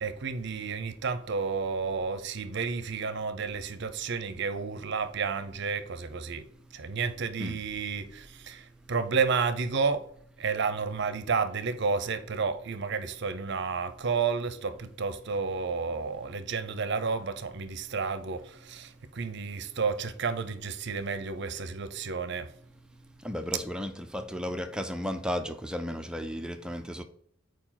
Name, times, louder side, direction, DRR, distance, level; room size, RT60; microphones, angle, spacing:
voice 1, 0.0-6.5 6.7-10.0 10.4-22.5, right 5 dB, 60° right, 0.6 m, -31 dB
voice 2, 23.2-27.0, equal, 5° right, 0.5 m, -34 dB
4.7 x 4.6 x 5.7 m
head